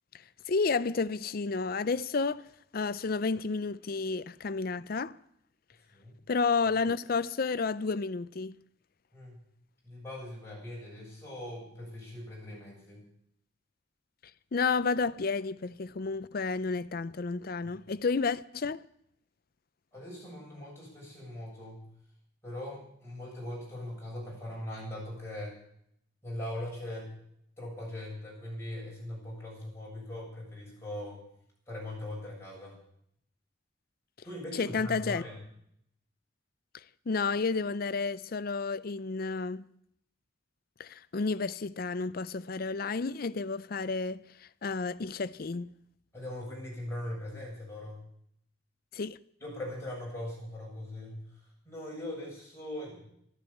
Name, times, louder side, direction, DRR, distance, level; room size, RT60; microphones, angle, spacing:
voice 1, 0.1-2.5 2.7-5.2 6.3-8.5 14.5-18.9 34.5-35.2 36.7-39.7 40.8-45.7 48.9-49.2, left 4 dB, 50° left, 0.5 m, -31 dB
voice 2, 9.8-13.0 19.9-21.9 22.4-25.6 26.2-27.2 27.6-31.2 31.7-32.7 34.2-35.4 46.1-48.0 49.4-51.3 51.6-53.0, left 1 dB, 15° left, 7.5 m, -40 dB
14.0 x 11.5 x 8.4 m
head